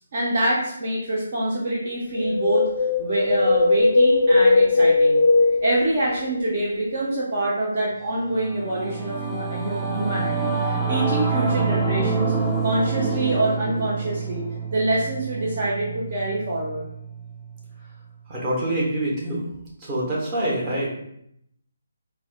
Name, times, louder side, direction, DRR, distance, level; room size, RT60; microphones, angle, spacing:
voice 1, 0.1-2.7 3.0-5.2 5.6-12.3 12.6-14.5 14.7-16.9, right 1 dB, 50° right, -5 dB, 0.7 m, -25 dB
Wind, 2.1-6.5 6.7-6.8, left 3 dB, 65° left, 0.3 m, -19 dB
Singing / Musical instrument, 8.1-17.8, right 4 dB, 5° right, 0.4 m, -27 dB
voice 2, 18.3-19.5 19.8-20.9, right 1 dB, 25° right, -5 dB, 1.0 m, -25 dB
4.1 x 2.2 x 2.3 m, 0.74 s
figure-of-eight pair, 150°, 0 cm